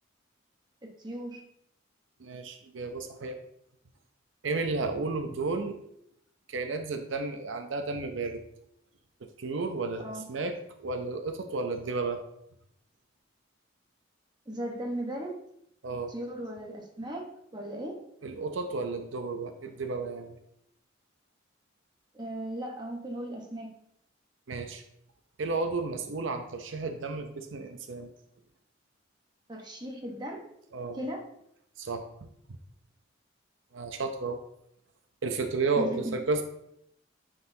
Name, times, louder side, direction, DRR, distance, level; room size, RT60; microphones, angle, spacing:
voice 1, 0.8-1.4 10.0-10.2 14.5-15.3 16.1-17.3 17.5-18.0 22.1-23.7 29.5-30.4 30.9-31.2 35.8-36.2, right 1 dB, 25° right, 0 dB, 1.0 m, -37 dB
voice 2, 2.2-3.4 4.4-5.8 6.5-8.4 9.4-12.2 15.8-16.1 18.2-20.4 24.5-24.8 25.4-28.1 30.7-31.0 31.8-32.0 33.7-34.4 35.2-36.4, right 3 dB, 80° right, 6 dB, 0.6 m, -32 dB
9.3 x 3.9 x 2.7 m, 0.74 s
head